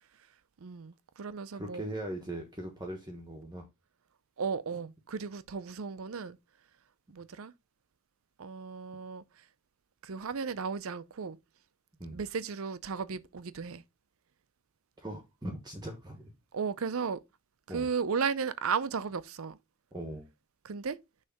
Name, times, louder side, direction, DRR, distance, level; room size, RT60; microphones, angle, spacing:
voice 1, 0.6-1.8 4.4-6.4 7.1-7.5 8.4-9.4 10.0-11.4 12.1-13.8 16.5-17.2 17.7-19.6 20.6-21.0, right 5 dB, 65° right, 0.5 m, -35 dB
voice 2, 1.5-3.6 12.0-12.2 15.0-16.3 17.7-17.9 19.9-20.3, right 1 dB, 20° right, 1.0 m, -40 dB
6.3 x 3.2 x 5.8 m
head